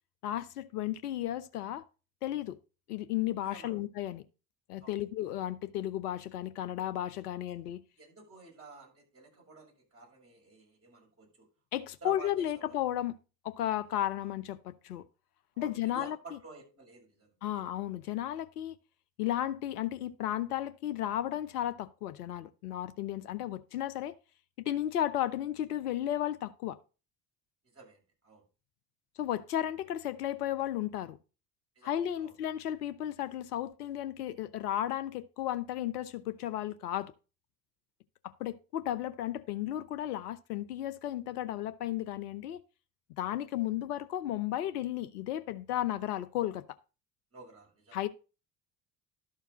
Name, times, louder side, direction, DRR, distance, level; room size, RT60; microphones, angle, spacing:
voice 1, 0.2-1.8 2.2-2.6 2.9-4.2 4.7-7.8 11.7-13.2 13.4-15.0 15.6-16.4 17.4-18.8 19.2-24.1 24.6-26.8 29.2-31.2 31.8-37.1 38.4-42.6 43.2-46.6 47.9-48.1, left 12 dB, 75° left, 0.8 m, -34 dB
voice 2, 8.0-11.5 12.0-12.7 13.9-14.3 15.5-17.6 27.7-28.4 31.7-32.3 43.2-43.4 47.3-48.0, right 4 dB, 30° right, 6.5 m, -51 dB
12.0 x 4.7 x 5.6 m
figure-of-eight pair, 55°, 46 cm